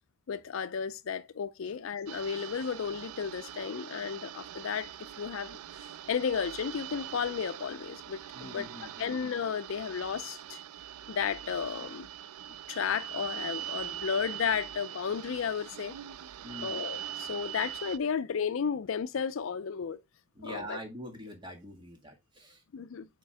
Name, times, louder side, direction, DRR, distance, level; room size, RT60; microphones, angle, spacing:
voice 1, 0.3-4.9 5.2-8.7 9.0-10.6 11.1-12.1 12.7-16.0 16.6-20.0 20.4-20.8 22.7-23.1, left 7 dB, 65° left, 0.4 m, -33 dB
sound 1, 2.1-18.0, right 11 dB, 85° right, 0.4 m, -42 dB
voice 2, 8.3-9.1 16.4-16.9 20.4-22.6, equal, 20° right, 1.7 m, -44 dB
7.6 x 4.4 x 3.3 m
head